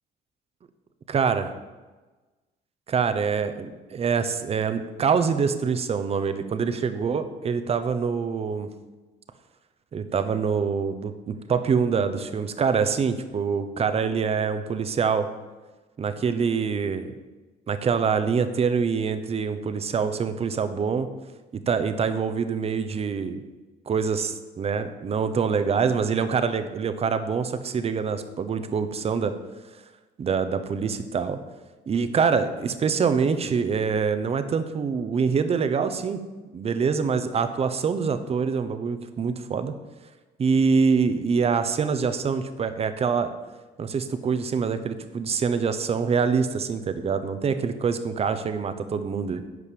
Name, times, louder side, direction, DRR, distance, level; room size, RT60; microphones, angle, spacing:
voice 1, 1.1-1.5 2.9-8.7 9.9-15.3 16.0-17.1 17.7-21.1 21.7-23.4 23.9-29.3 30.2-31.4 31.9-36.2 36.5-39.7 40.4-43.3 43.8-49.5, right 5 dB, 35° right, 10 dB, 1.0 m, -25 dB
11.0 x 5.3 x 8.5 m, 1.2 s
cardioid pair, 110°, 17 cm